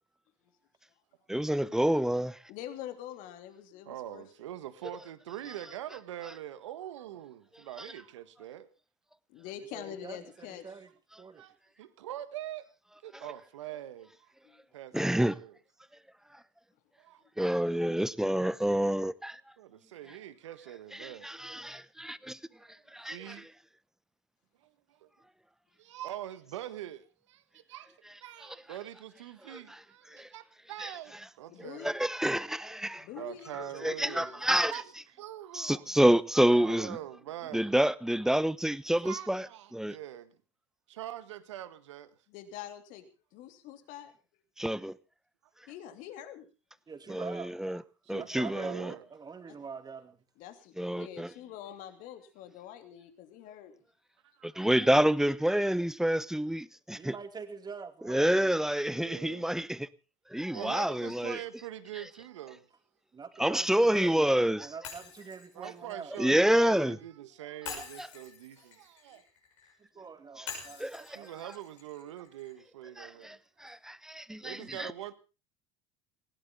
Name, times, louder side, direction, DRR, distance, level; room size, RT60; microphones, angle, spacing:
voice 1, 1.3-2.4 14.9-15.3 17.4-19.4 21.0-22.4 22.9-23.3 29.5-29.6 30.1-30.3 30.8-30.9 31.8-33.1 33.8-34.7 35.5-37.0 37.5-39.5 39.7-40.0 44.6-44.9 47.1-47.8 48.1-48.9 50.8-51.3 54.4-57.1 58.0-59.9 60.3-61.4 63.4-64.7 66.2-67.0 68.0-68.1 70.4-70.5 70.8-71.2 73.0-73.4 73.6-74.9, right 1 dB, 5° right, 0.9 m, -28 dB
voice 2, 2.5-4.3 9.3-10.6 14.4-14.6 31.5-31.9 33.0-34.2 42.3-44.1 45.7-46.5 50.4-53.8, left 11 dB, 65° left, 2.9 m, -45 dB
voice 3, 3.8-8.7 11.3-12.7 13.0-14.3 14.7-15.6 17.0-17.2 19.6-21.3 22.4-22.8 23.1-23.5 24.6-25.1 25.8-27.9 28.2-31.8 33.1-35.9 36.4-37.7 39.0-40.4 40.9-42.1 48.0-49.1 54.3-54.7 58.9-59.5 60.5-62.7 64.0-64.6 65.5-69.2 71.1-73.4 74.4-75.1, right 12 dB, 85° right, 1.5 m, -44 dB
voice 4, 9.7-10.9 11.2-11.4 46.9-47.5 48.2-50.2 57.0-58.5 63.1-64.3 64.6-66.1 69.9-71.3, right 5 dB, 30° right, 2.6 m, -45 dB
Shatter, 64.8-66.9 67.6-69.7 70.5-72.6, left 6 dB, 90° left, 6.4 m, -46 dB
20.0 x 16.5 x 3.7 m
hypercardioid pair, 80°, 15 cm